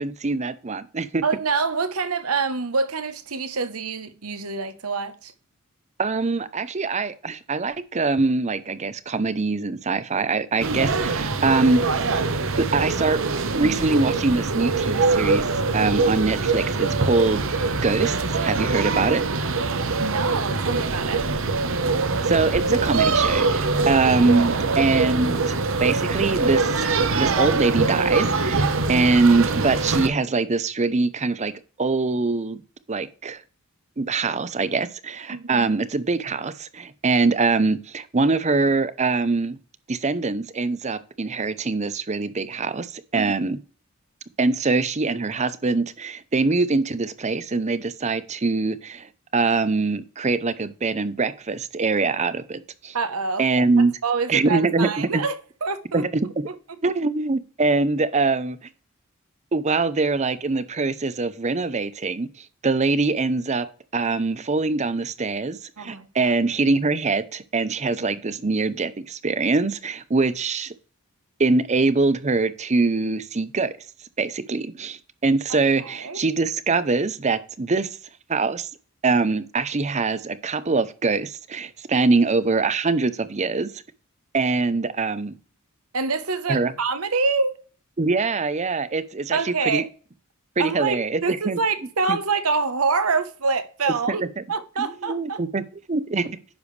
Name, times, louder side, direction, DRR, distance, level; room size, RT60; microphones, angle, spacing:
voice 1, 0.0-1.2 6.0-12.2 12.6-15.5 15.7-17.4 17.8-19.2 22.2-31.5 31.8-32.6 32.9-33.4 34.0-39.6 39.9-43.6 44.4-53.0 53.4-53.9 54.3-55.2 55.9-56.5 56.8-58.7 59.5-63.7 63.9-70.7 71.4-73.7 74.2-77.9 78.3-78.7 79.0-83.8 84.3-85.4 86.5-86.7 88.0-89.8 90.6-91.6 92.1-92.2 94.1-94.4 94.8-95.6 95.9-96.4, right 3 dB, 30° right, 0.7 m, -23 dB
voice 2, 1.2-5.3 11.1-11.5 20.0-21.2 28.8-28.9 35.3-35.7 43.1-43.3 52.9-53.4 54.0-56.0 56.5-56.6 65.8-66.3 67.8-68.0 75.5-76.2 85.9-87.6 89.3-89.9 90.6-94.2 94.5-95.4, right 4 dB, 85° right, 1.0 m, -26 dB
sound 1, 10.6-30.1, right 3 dB, 65° right, 0.9 m, -23 dB
10.5 x 6.8 x 3.3 m
head